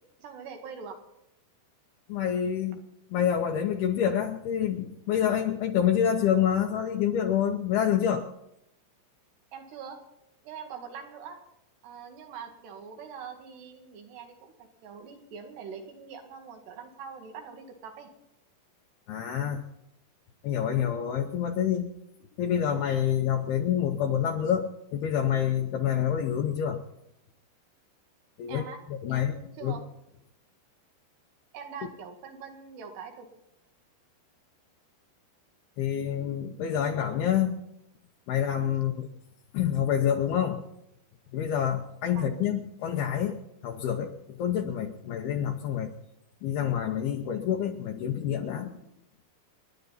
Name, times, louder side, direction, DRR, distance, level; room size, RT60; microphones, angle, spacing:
voice 1, 0.2-1.0 9.5-10.0 10.4-11.4 11.8-18.1 28.5-28.8 29.1-29.9 31.5-33.3 42.2-42.3, right 6 dB, 75° right, 4 dB, 4.0 m, -43 dB
voice 2, 2.1-2.8 3.1-8.3 19.1-19.6 20.4-21.9 22.4-26.8 28.4-28.6 28.9-29.3 29.6-29.8 35.8-37.6 38.3-39.1 39.5-40.6 41.3-45.9 46.4-48.7, left 9 dB, 75° left, 2 dB, 2.6 m, -27 dB
30.0 x 10.5 x 4.1 m, 0.81 s
omnidirectional pair, 5.0 m